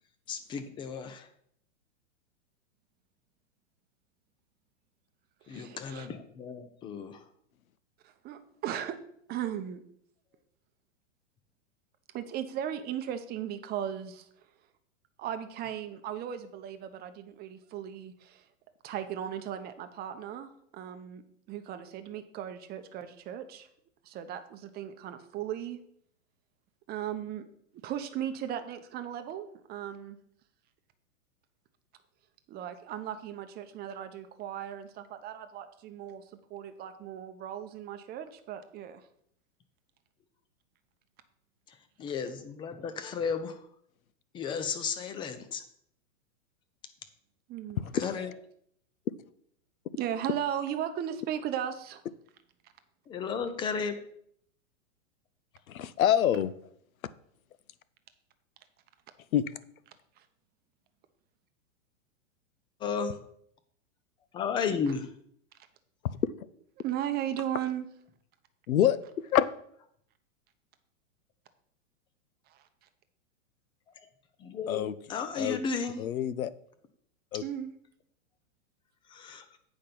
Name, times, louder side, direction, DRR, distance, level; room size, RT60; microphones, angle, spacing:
voice 1, 0.3-1.3 5.5-7.3 41.7-43.7 44.3-45.6 47.9-48.3 53.1-54.0 62.8-63.2 64.3-65.1 73.9-74.1 74.4-76.0 79.1-79.6, left 6 dB, 10° left, 10 dB, 0.4 m, -34 dB
voice 2, 5.5-6.1 8.2-9.0 9.3-9.8 12.1-14.2 15.2-18.4 18.8-21.2 21.5-23.7 24.1-25.8 26.9-27.5 27.8-30.2 32.5-36.2 36.5-39.0 47.5-47.8 49.9-52.0 66.8-67.9 77.4-77.7, right 10 dB, 25° right, 9 dB, 0.7 m, -36 dB
voice 3, 55.7-56.5 59.3-59.4 68.7-69.5 74.7-74.9 75.4-75.6 76.0-76.5 77.3-77.4, left 11 dB, 85° left, 17 dB, 0.7 m, -26 dB
8.5 x 5.2 x 5.9 m, 0.68 s
hypercardioid pair, 135°, 41 cm